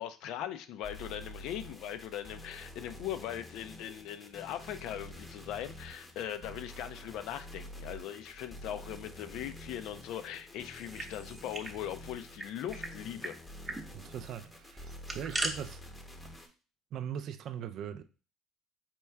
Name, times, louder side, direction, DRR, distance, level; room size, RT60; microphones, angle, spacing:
voice 1, 0.0-13.4, left 10 dB, 70° left, 0.4 m, -40 dB
sound 1, 0.8-16.5, left 1 dB, 15° left, 0.7 m, -48 dB
sound 2, 10.7-11.8 12.0-12.1 12.4-12.9 13.2-13.3 13.6-13.8 14.8-15.5, right 2 dB, 25° right, 0.7 m, -37 dB
voice 2, 13.9-15.8 16.9-18.0, right 9 dB, 60° right, 0.4 m, -40 dB
4.4 x 2.2 x 3.3 m
supercardioid pair, 90°, 0 cm